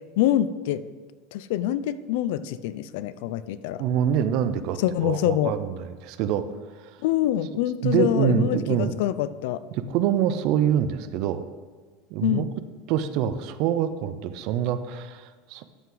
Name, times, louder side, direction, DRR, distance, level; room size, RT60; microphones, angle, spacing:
voice 1, 0.2-0.8 1.3-3.8 4.8-5.5 7.0-9.6 12.2-12.5, left 12 dB, 60° left, 15 dB, 0.4 m, -25 dB
voice 2, 3.8-6.4 7.8-9.0 9.7-11.4 12.1-12.5 12.9-15.6, right 9 dB, 45° right, 12 dB, 0.4 m, -25 dB
12.5 x 5.7 x 3.8 m, 1.4 s
supercardioid pair, 175°, 0 cm